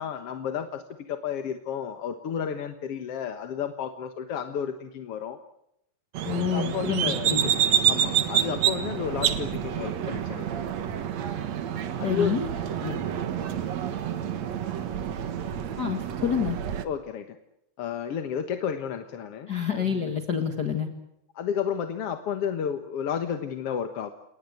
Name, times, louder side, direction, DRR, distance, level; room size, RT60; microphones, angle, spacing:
voice 1, 0.0-5.4 6.5-7.3 7.9-10.6 12.0-12.4 12.8-13.1 16.8-17.3 17.8-20.1 21.4-24.1, left 8 dB, 55° left, 7 dB, 2.0 m, -32 dB
sound 1, 6.1-16.8, right 9 dB, 65° right, 2.6 m, -28 dB
voice 2, 6.2-7.4 12.0-12.5 15.8-16.6 19.5-20.9, left 7 dB, 40° left, 5 dB, 2.0 m, -27 dB
29.0 x 19.0 x 8.0 m, 0.79 s
omnidirectional pair, 3.5 m